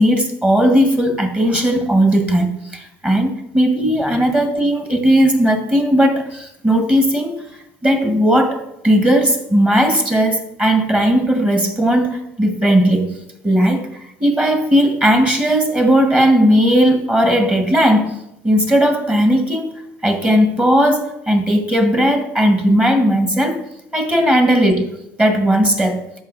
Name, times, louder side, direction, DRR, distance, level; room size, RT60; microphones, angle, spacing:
voice 1, 0.0-7.4 7.8-13.1 13.4-18.2 18.4-19.7 20.0-23.6 23.9-26.0, equal, 15° right, 6 dB, 1.2 m, -16 dB
13.0 x 4.9 x 2.5 m, 0.82 s
supercardioid pair, 90°, 7 cm